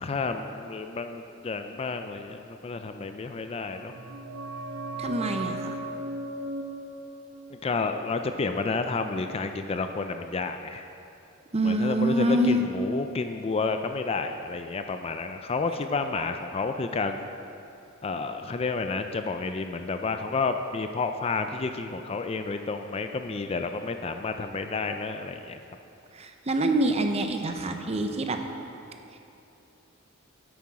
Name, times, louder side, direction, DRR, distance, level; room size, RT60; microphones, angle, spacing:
voice 1, 0.0-3.9 7.5-10.9 11.6-17.2 18.0-25.6, left 4 dB, 30° left, 7 dB, 0.3 m, -30 dB
sound 1, 3.5-9.0 9.2-9.3, right 2 dB, 70° right, 0.9 m, -38 dB
voice 2, 5.0-5.8 11.5-12.7 26.1-28.4, right 1 dB, 30° right, 5 dB, 0.6 m, -25 dB
9.6 x 8.5 x 4.8 m, 2.8 s
head